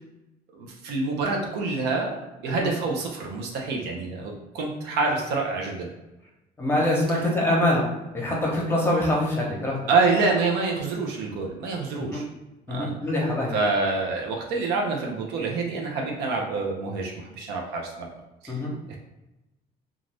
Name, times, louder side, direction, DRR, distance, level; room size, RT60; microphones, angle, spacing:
voice 1, 0.5-5.9 9.9-12.2 12.7-12.9 13.5-18.1 18.4-18.5, right 3 dB, 80° right, 0 dB, 0.7 m, -27 dB
voice 2, 6.6-7.8 8.1-9.8 12.1-12.2 12.7-13.6 18.5-18.7, left 1 dB, 15° left, -3 dB, 0.8 m, -24 dB
2.5 x 2.4 x 3.3 m, 1.0 s
cardioid pair, 110°, 17 cm